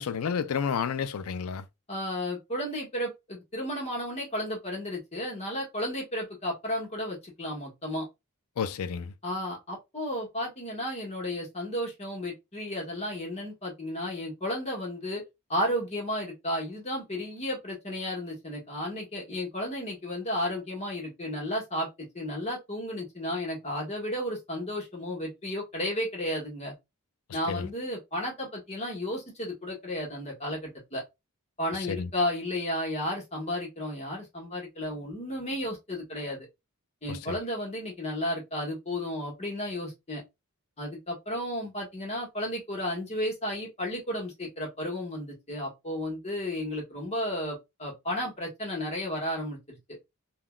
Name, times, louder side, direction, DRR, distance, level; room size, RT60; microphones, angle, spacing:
voice 1, 0.0-1.7 8.6-9.1 27.5-27.7 31.9-32.1 37.1-37.3, left 6 dB, 75° left, 0.4 m, -31 dB
voice 2, 1.9-8.1 9.2-15.2 15.5-26.7 27.3-31.0 31.6-36.5 37.0-40.2 40.8-49.8, left 1 dB, 30° left, 1.3 m, -33 dB
3.6 x 2.3 x 2.2 m
head